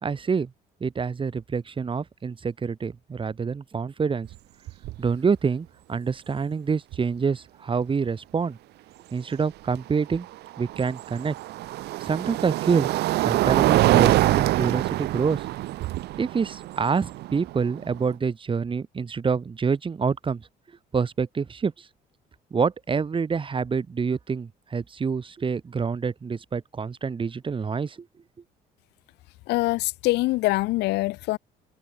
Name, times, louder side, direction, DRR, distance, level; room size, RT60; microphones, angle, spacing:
voice 1, 0.0-0.5 0.8-4.3 5.0-8.6 9.1-10.3 10.6-11.4 12.0-12.9 13.2-15.4 16.2-20.5 20.9-21.9 22.5-28.0, right 5 dB, 30° right, 4.0 m, -27 dB
sound 1, 4.3-4.4 4.7-5.1 6.9-7.0 10.0-18.1, right 17 dB, 80° right, 2.7 m, -25 dB
voice 2, 29.5-31.4, left 20 dB, 90° left, 2.0 m, -24 dB
open air
cardioid pair, 110°, 17 cm